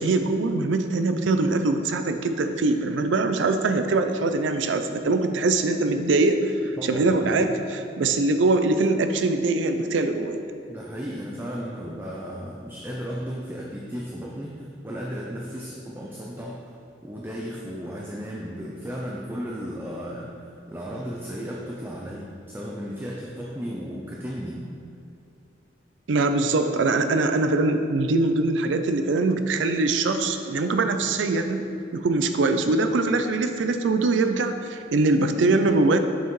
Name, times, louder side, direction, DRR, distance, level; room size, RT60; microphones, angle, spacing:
voice 1, 0.0-6.4 6.8-7.5 8.0-10.4 26.1-31.7 31.9-36.0, right 3 dB, 80° right, 8 dB, 0.4 m, -22 dB
voice 2, 6.8-7.5 10.7-16.7 17.0-20.3 20.7-24.7, equal, 10° right, -3 dB, 0.5 m, -35 dB
7.3 x 5.6 x 3.1 m, 2.6 s
head